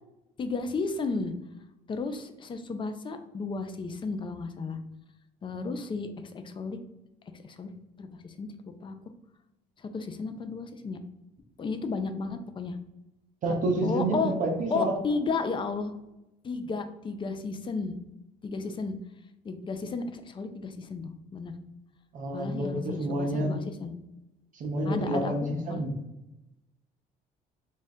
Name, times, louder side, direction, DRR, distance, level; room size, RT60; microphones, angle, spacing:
voice 1, 0.4-1.3 1.9-4.8 5.4-6.8 7.3-7.7 8.0-8.5 8.8-9.0 9.8-11.0 11.6-12.8 13.8-14.3 14.7-15.9 16.4-18.0 18.4-18.9 19.4-21.5 22.3-23.9 24.8-25.3 25.7-25.9, left 4 dB, 30° left, 8 dB, 0.4 m, -33 dB
voice 2, 13.4-14.9 22.1-23.6 24.5-26.0, right 1 dB, 50° right, 1 dB, 0.7 m, -29 dB
3.7 x 2.4 x 4.1 m, 0.97 s
cardioid pair, 110°, 17 cm